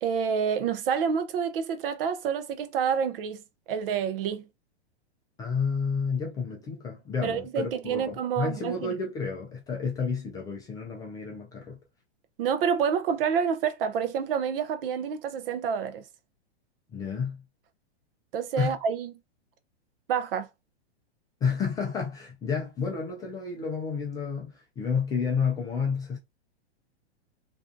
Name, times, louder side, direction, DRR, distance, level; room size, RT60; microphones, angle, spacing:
voice 1, 0.0-3.4 3.7-4.5 7.2-8.9 12.4-16.0 18.3-19.1 20.1-20.5, right 7 dB, 55° right, 0.6 m, -28 dB
voice 2, 5.4-11.8 16.9-17.4 18.6-18.7 21.4-26.2, left 5 dB, 10° left, 0.3 m, -30 dB
2.6 x 2.3 x 2.5 m
hypercardioid pair, 130°, 33 cm